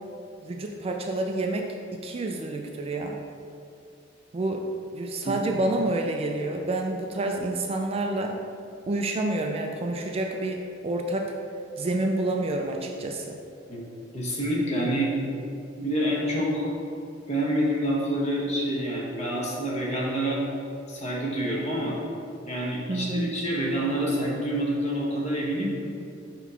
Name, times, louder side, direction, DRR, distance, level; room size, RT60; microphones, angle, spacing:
voice 1, 0.4-3.2 4.3-4.7 4.9-8.4 8.9-11.3 11.8-13.4 22.9-23.4, right 2 dB, 30° right, 2 dB, 0.3 m, -28 dB
voice 2, 14.1-15.1 15.8-16.7 17.3-20.4 20.9-22.0 22.4-25.7, right 1 dB, 35° left, -4 dB, 1.1 m, -27 dB
6.1 x 3.0 x 5.6 m, 2.6 s
head